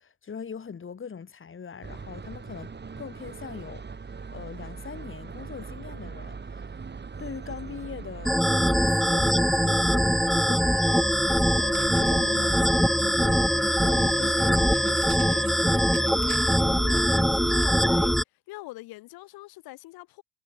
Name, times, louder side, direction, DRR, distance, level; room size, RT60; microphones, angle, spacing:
voice 1, 0.0-6.8 7.2-15.5, left 6 dB, 30° left, 4.4 m, -41 dB
sound 1, 1.8-18.2, right 5 dB, 25° right, 7.1 m, -41 dB
sound 2, 8.2-18.2, equal, ahead, 2.3 m, -22 dB
sound 3, 11.2-17.7, right 40 dB or more, 80° right, 5.9 m, -48 dB
voice 2, 16.6-18.2 18.5-20.2, left 19 dB, 65° left, 4.0 m, -42 dB
supercardioid pair, 80°, 39 cm